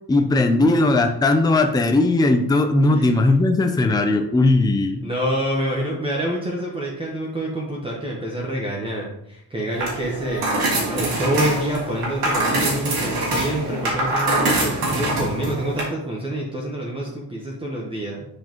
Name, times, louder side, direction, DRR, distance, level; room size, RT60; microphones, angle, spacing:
voice 1, 0.1-5.0, left 2 dB, 10° left, 6 dB, 0.5 m, -18 dB
voice 2, 2.8-3.2 5.0-10.5 10.7-18.2, right 1 dB, 15° right, -3 dB, 1.1 m, -27 dB
sound 1, 9.7-15.8, right 2 dB, 75° right, 2.6 m, -24 dB
7.6 x 4.8 x 3.1 m, 0.76 s
cardioid pair, 130°, 39 cm